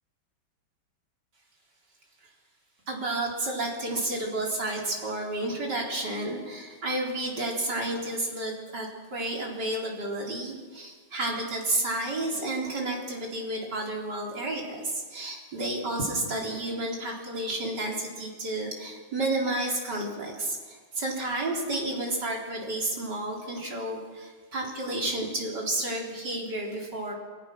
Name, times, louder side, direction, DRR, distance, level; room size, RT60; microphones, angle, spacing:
voice 1, 2.9-27.1, right 2 dB, 55° right, -1 dB, 4.5 m, -31 dB
27.5 x 19.5 x 6.1 m, 1.5 s
omnidirectional pair, 2.2 m